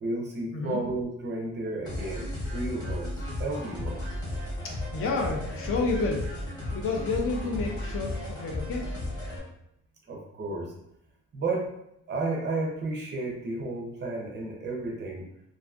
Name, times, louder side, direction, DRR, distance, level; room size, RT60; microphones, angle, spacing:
voice 1, 0.0-4.0 10.1-10.7 11.3-11.7 12.1-15.2, right 2 dB, 35° right, -1 dB, 0.5 m, -32 dB
sound 1, 1.8-9.4, left 1 dB, 15° left, 0.8 m, -34 dB
voice 2, 4.9-6.4 6.7-8.9, left 3 dB, 45° left, 1 dB, 0.4 m, -30 dB
2.5 x 2.3 x 2.3 m, 0.78 s
cardioid pair, 175°, 31 cm